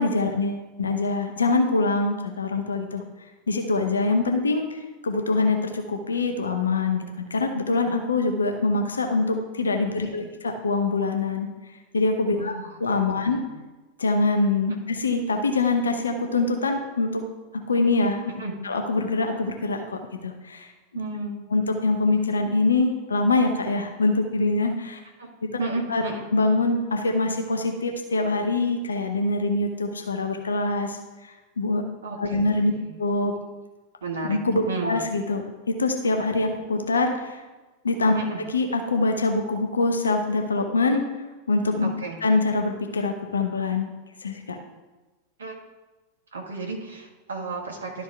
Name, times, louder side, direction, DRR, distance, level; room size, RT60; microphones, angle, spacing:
voice 1, 0.0-3.0 3.5-11.5 11.9-12.5 12.8-13.4 14.0-17.2 17.5-18.3 18.6-20.7 21.5-25.0 25.9-26.0 26.3-31.8 32.2-32.7 33.0-33.4 34.2-37.4 37.8-38.1 38.5-41.0 41.5-41.9 42.2-43.9 44.2-44.6, left 3 dB, 75° left, 4 dB, 0.8 m, -24 dB
voice 2, 12.3-12.8 13.2-13.5 18.4-18.5 20.9-21.3 25.2-25.3 25.6-26.3 32.0-32.9 34.0-34.4 34.7-35.0 38.1-38.4 41.8-42.2 45.4-45.5 46.3-48.0, right 3 dB, 70° right, -1 dB, 1.6 m, -33 dB
12.0 x 4.6 x 3.4 m, 1.2 s
figure-of-eight pair, 90°, 0 cm